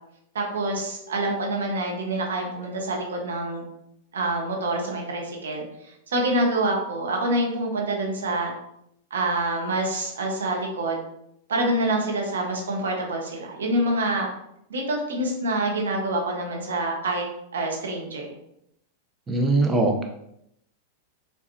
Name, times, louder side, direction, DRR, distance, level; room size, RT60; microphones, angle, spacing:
voice 1, 0.3-3.6 4.1-5.6 6.1-8.5 9.1-11.0 11.5-14.3 14.7-17.2 17.5-18.3, right 1 dB, 85° right, 0 dB, 1.3 m, -26 dB
voice 2, 19.3-20.0, right 2 dB, 20° right, 2 dB, 0.8 m, -21 dB
4.7 x 4.0 x 2.8 m, 0.76 s
hypercardioid pair, 110°, 0 cm